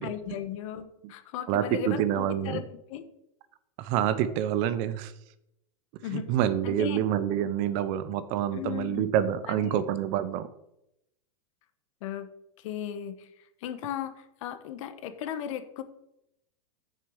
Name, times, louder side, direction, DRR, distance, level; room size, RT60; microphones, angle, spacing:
voice 1, 0.0-2.6 2.9-3.0 6.0-6.3 6.6-7.0 8.5-9.1 9.5-9.8 12.0-12.3 12.6-15.8, left 10 dB, 60° left, 11 dB, 1.1 m, -36 dB
voice 2, 1.5-2.6 3.8-5.1 6.1-10.5, right 10 dB, 40° right, 14 dB, 0.7 m, -27 dB
6.7 x 6.5 x 6.3 m, 0.82 s
supercardioid pair, 145°, 19 cm